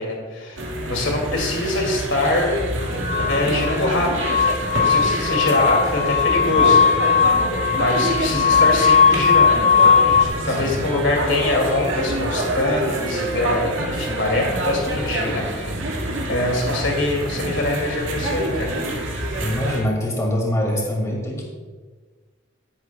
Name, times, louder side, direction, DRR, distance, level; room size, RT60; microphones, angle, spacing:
voice 1, 0.0-2.6 2.9-3.0 3.3-4.1 4.7-7.2 7.7-15.8 16.2-18.7, left 2 dB, 60° left, 0 dB, 2.5 m, -24 dB
sound 1, 0.6-19.8, right 1 dB, 70° right, 2.0 m, -26 dB
sound 2, 3.1-10.3, left 6 dB, 30° left, 0.3 m, -18 dB
voice 2, 19.4-21.4, equal, 15° left, -1 dB, 2.2 m, -24 dB
12.5 x 11.0 x 2.3 m, 1.4 s
head